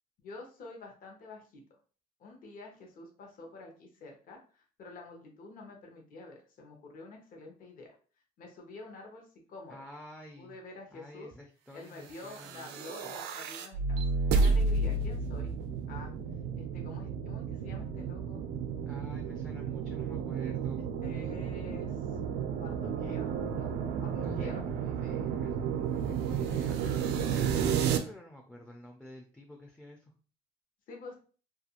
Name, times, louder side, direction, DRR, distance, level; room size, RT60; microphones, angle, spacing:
voice 1, 0.2-1.6 2.2-7.9 8.4-9.8 10.4-11.3 11.7-14.0 14.4-15.6 15.9-16.1 16.6-18.5 20.8-22.2 22.5-24.6 30.9-31.2, left 3 dB, 55° left, 1 dB, 0.8 m, -48 dB
voice 2, 9.7-10.6 10.9-13.2 18.9-20.8 24.1-30.1, left 1 dB, 5° left, 1 dB, 0.4 m, -50 dB
sound 1, 12.2-28.0, right 5 dB, 85° right, 0.4 m, -32 dB
2.4 x 2.3 x 2.8 m, 0.39 s
cardioid pair, 110°, 17 cm